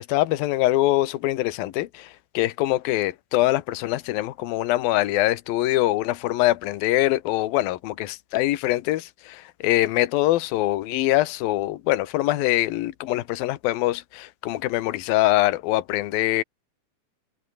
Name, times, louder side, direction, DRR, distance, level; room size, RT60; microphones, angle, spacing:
voice 1, 0.0-2.1 2.3-16.4, left 16 dB, 65° left, 2.7 m, -23 dB
omnidirectional pair, 5.1 m